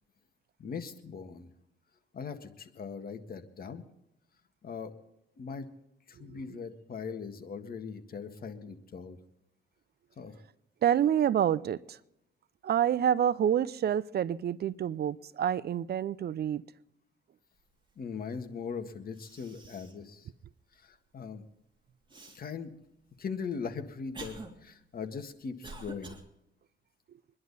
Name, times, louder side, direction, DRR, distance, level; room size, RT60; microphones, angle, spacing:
voice 1, 0.6-1.5 2.1-3.8 4.6-4.9 5.4-5.7 6.1-9.2 10.2-10.3 18.0-20.3 20.7-21.4 22.3-22.7 23.2-24.4 24.6-26.2, left 5 dB, 50° left, 7 dB, 1.8 m, -40 dB
voice 2, 10.8-12.0 12.6-16.6, right 9 dB, 55° right, 18 dB, 0.6 m, -28 dB
Cough, 18.7-18.8 19.1-20.0 20.5-20.6 22.1-22.4 23.2-26.2, right 3 dB, 25° right, 3.0 m, -47 dB
24.5 x 11.0 x 4.1 m, 0.85 s
cardioid pair, 90°, 20 cm